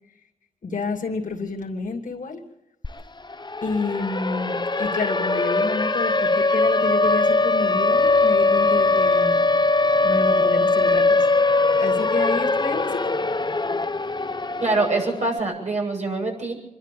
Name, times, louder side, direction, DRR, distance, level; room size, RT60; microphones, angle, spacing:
voice 1, 0.6-2.4 3.6-9.4 10.0-11.3 11.8-13.1, left 3 dB, 65° left, -1 dB, 2.9 m, -29 dB
Siren, 2.8-2.9 3.2-15.3, left 3 dB, 30° left, 1.0 m, -21 dB
voice 2, 14.6-16.5, right 3 dB, 55° right, 0 dB, 7.6 m, -24 dB
25.5 x 12.0 x 8.5 m, 0.92 s
cardioid pair, 45°, 14 cm